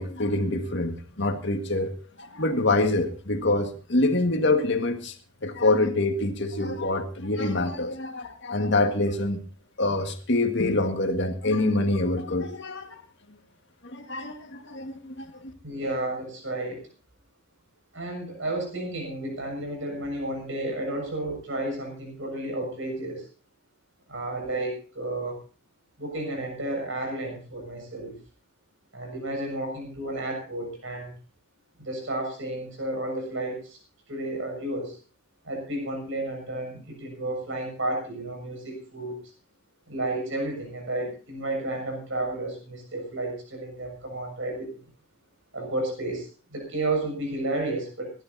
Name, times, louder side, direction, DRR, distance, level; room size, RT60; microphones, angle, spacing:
voice 1, 0.0-5.1 5.4-9.4 9.8-13.0 13.8-15.3, left 2 dB, 55° left, 6 dB, 1.8 m, -25 dB
voice 2, 15.6-16.9 17.9-23.3 24.1-25.4 26.0-28.2 28.9-31.1 31.8-33.8 34.1-35.0 35.4-39.2 39.9-44.7 45.5-48.1, right 2 dB, 60° right, 3 dB, 6.9 m, -32 dB
26.0 x 12.0 x 2.8 m, 0.36 s
head